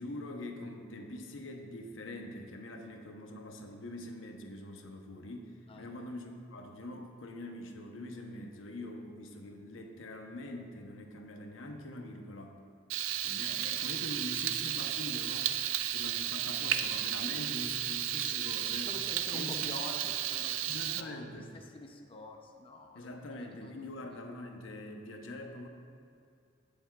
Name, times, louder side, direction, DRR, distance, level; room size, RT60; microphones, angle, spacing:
voice 1, 0.0-12.6 13.2-15.5 15.9-18.9 19.3-19.6 20.7-21.5 22.9-25.7, left 1 dB, 80° left, 3 dB, 0.9 m, -44 dB
Frying (food), 12.9-21.0, right 11 dB, 80° right, 0.4 m, -33 dB
voice 2, 18.9-20.6 21.0-23.1 23.4-23.7 24.0-24.2, left 2 dB, 30° left, 2 dB, 0.6 m, -46 dB
16.5 x 6.8 x 2.4 m, 2.4 s
head